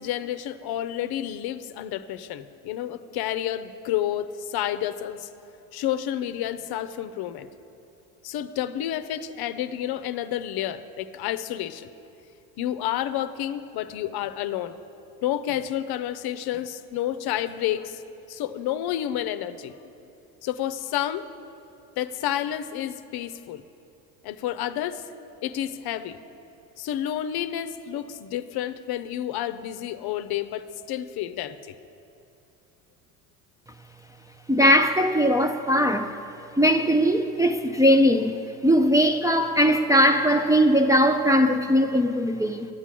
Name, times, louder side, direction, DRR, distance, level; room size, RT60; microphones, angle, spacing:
voice 1, 0.0-5.3 5.7-7.5 8.2-11.9 12.6-14.7 15.2-18.0 18.3-19.7 20.4-21.2 22.0-23.6 24.2-25.0 25.4-26.2 26.8-31.7, left 11 dB, 55° left, 0.7 m, -30 dB
voice 2, 34.5-36.2 36.6-38.4 38.6-42.7, equal, 10° right, 0.4 m, -20 dB
10.0 x 8.2 x 7.5 m
hypercardioid pair, 75°, 46 cm